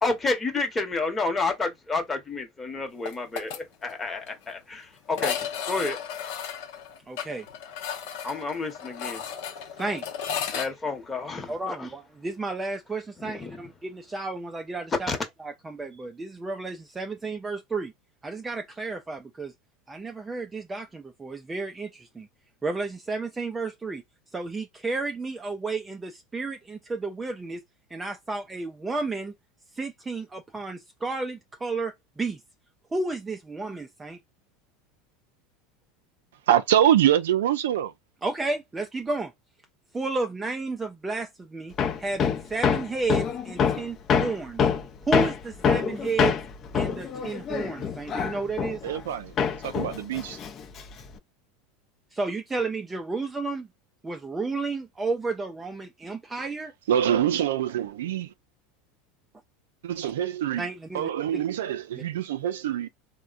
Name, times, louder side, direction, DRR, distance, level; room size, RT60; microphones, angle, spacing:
voice 1, 0.0-6.0 8.2-9.2 9.5-9.6 10.5-11.9 13.2-13.6 15.1-15.2, left 3 dB, 20° left, 1.0 m, -30 dB
sound 1, 3.1-3.6 3.9-4.0 4.3-4.4 5.1-10.7, left 8 dB, 70° left, 0.7 m, -34 dB
voice 2, 7.1-7.5 9.8-10.0 11.5-15.1 15.4-17.9 18.2-19.5 19.9-22.3 22.6-24.0 24.3-27.6 27.9-29.3 29.7-32.4 32.9-34.2 38.2-39.3 39.9-41.7 42.0-44.6 45.1-46.4 46.7-48.8 52.1-53.7 54.0-56.7 60.6-61.4, right 3 dB, 15° right, 0.4 m, -32 dB
voice 3, 36.5-37.9 48.8-49.3 49.6-50.4 56.9-58.3 59.8-60.7 60.9-62.9, right 10 dB, 90° right, 0.4 m, -24 dB
Hammer, 41.8-49.1 49.4-51.1, left 6 dB, 35° left, 0.5 m, -26 dB
3.5 x 2.1 x 2.5 m
supercardioid pair, 115°, 0 cm